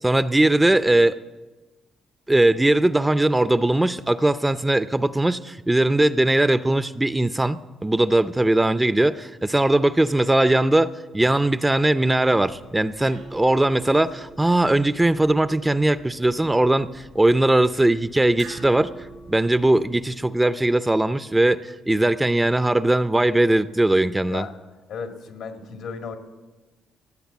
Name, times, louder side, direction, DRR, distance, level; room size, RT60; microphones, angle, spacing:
voice 1, 0.0-1.2 2.3-18.9 19.3-24.5, right 1 dB, 10° right, 13 dB, 0.5 m, -20 dB
sound 1, 12.4-20.3, right 4 dB, 90° right, 5.7 m, -45 dB
voice 2, 24.2-24.5 24.9-26.2, left 5 dB, 80° left, 5 dB, 1.9 m, -34 dB
16.5 x 8.1 x 8.1 m, 1.2 s
cardioid pair, 90°, 0 cm